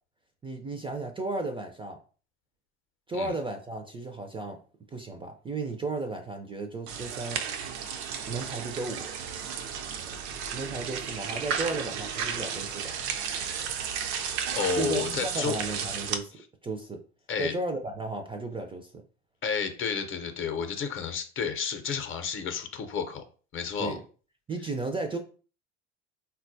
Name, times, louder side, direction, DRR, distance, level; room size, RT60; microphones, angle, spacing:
voice 1, 0.4-2.0 3.1-4.6 4.9-7.4 8.3-9.1 10.5-12.9 14.7-16.4 16.6-17.0 17.4-18.9 23.8-24.0 24.5-25.2, right 3 dB, 15° right, 4 dB, 0.4 m, -34 dB
sound 1, 6.9-16.2, right 7 dB, 75° right, 0.5 m, -33 dB
voice 2, 14.6-15.6 17.3-17.5 19.4-23.2 23.5-24.0, left 6 dB, 40° left, 8 dB, 0.7 m, -31 dB
3.9 x 2.3 x 2.6 m, 0.39 s
hypercardioid pair, 80°, 33 cm